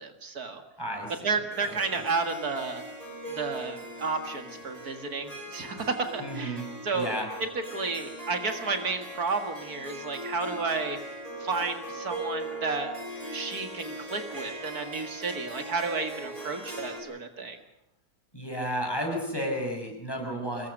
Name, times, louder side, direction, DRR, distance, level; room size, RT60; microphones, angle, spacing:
voice 1, 0.0-0.6 1.2-2.8 3.4-7.1 7.4-11.0 11.4-12.9 13.3-17.6, right 4 dB, 70° right, 6 dB, 2.4 m, -32 dB
voice 2, 0.8-1.1 1.6-2.0 6.2-6.6 6.9-7.3 18.3-20.7, equal, 15° left, 1 dB, 6.2 m, -32 dB
Harp, 1.5-17.0, right 1 dB, 25° right, 6.7 m, -40 dB
25.0 x 21.0 x 6.6 m, 0.81 s
omnidirectional pair, 1.6 m